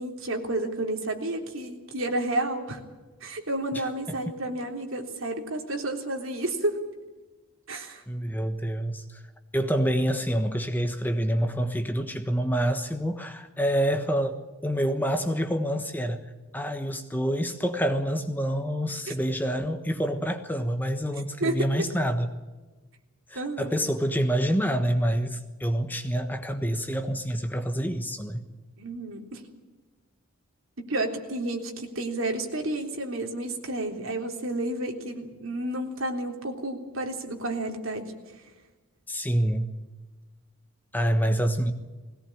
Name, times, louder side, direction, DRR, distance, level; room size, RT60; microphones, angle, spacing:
voice 1, 0.0-2.8 3.2-6.7 7.7-8.0 19.1-19.2 21.4-21.7 23.4-23.7 28.8-29.4 30.8-38.2, right 1 dB, 60° right, 2 dB, 3.6 m, -31 dB
voice 2, 8.1-9.2 9.5-16.2 16.5-22.3 23.3-28.5 39.1-39.7 40.9-41.7, equal, 10° left, 7 dB, 1.2 m, -27 dB
21.0 x 18.0 x 8.6 m, 1.2 s
head